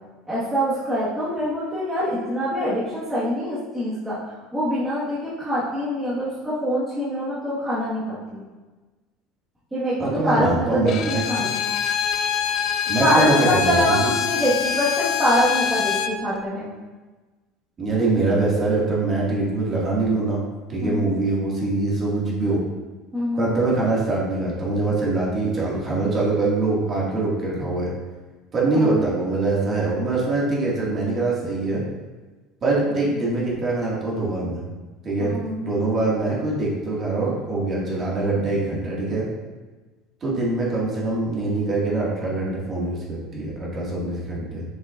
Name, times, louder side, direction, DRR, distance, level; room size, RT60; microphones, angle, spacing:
voice 1, 0.2-8.4 9.7-11.6 13.0-16.7 20.8-21.1 23.1-23.5 28.7-29.0 35.2-35.6, equal, 10° right, -10 dB, 1.6 m, -24 dB
voice 2, 10.0-11.5 12.9-14.1 17.8-20.4 20.7-22.6 23.4-27.9 28.5-31.8 32.6-34.6 35.0-39.3 40.2-44.6, right 2 dB, 30° right, -5 dB, 2.0 m, -23 dB
Bowed string instrument, 10.9-16.2, left 8 dB, 45° left, 0.4 m, -24 dB
7.0 x 6.4 x 2.5 m, 1.3 s
cardioid pair, 150°, 0 cm